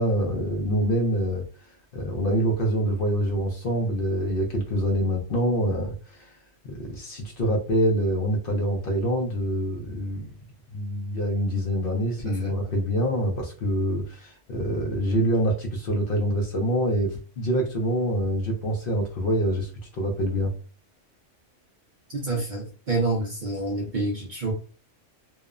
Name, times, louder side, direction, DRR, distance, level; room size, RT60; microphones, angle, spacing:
voice 1, 0.0-1.4 1.9-6.3 6.6-10.3 10.7-19.7 20.0-20.5, equal, 55° left, 1 dB, 0.7 m, -25 dB
voice 2, 22.1-24.5, right 2 dB, 50° right, -1 dB, 0.6 m, -28 dB
2.9 x 2.0 x 2.3 m, 0.36 s
omnidirectional pair, 1.3 m